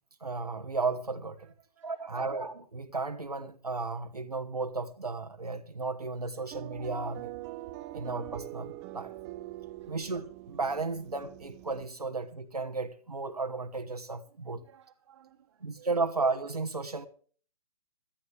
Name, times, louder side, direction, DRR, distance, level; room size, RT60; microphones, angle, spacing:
voice 1, 0.2-1.5 1.8-7.3 7.9-9.1 9.9-14.6 15.6-17.1, right 3 dB, 90° right, 1.2 m, -34 dB
voice 2, 1.5-2.1 9.1-9.3 9.6-9.9 14.4-15.9, right 10 dB, 50° right, 1.4 m, -60 dB
sound 1, 6.5-11.9, right 16 dB, 25° right, 0.7 m, -43 dB
17.0 x 12.0 x 3.3 m
figure-of-eight pair, 125°, 19 cm